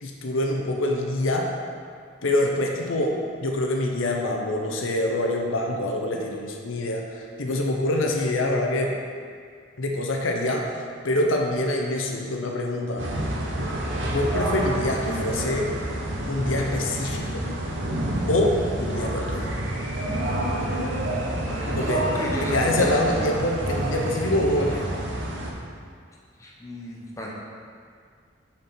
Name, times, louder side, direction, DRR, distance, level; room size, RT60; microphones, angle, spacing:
voice 1, 0.0-1.5 2.2-9.0 9.8-10.7 11.0-13.2 14.0-15.8 16.3-17.5 18.3-19.5 21.7-22.1 22.4-24.9, left 1 dB, 80° left, 1 dB, 0.7 m, -25 dB
sound 1, 13.0-25.5, right 1 dB, 65° right, 0.9 m, -28 dB
voice 2, 21.4-23.0 26.4-27.3, left 1 dB, 15° left, -4 dB, 0.8 m, -34 dB
6.5 x 4.4 x 4.3 m, 2.1 s
head